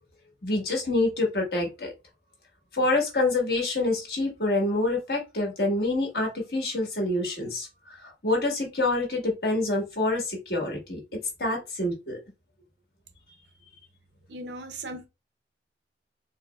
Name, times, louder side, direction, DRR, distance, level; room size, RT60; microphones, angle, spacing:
voice 1, 0.4-1.9 2.7-7.7 8.0-12.2, left 2 dB, 55° left, 1.5 m, -27 dB
voice 2, 14.3-15.1, right 2 dB, 75° right, 0.7 m, -37 dB
4.3 x 3.1 x 2.3 m
head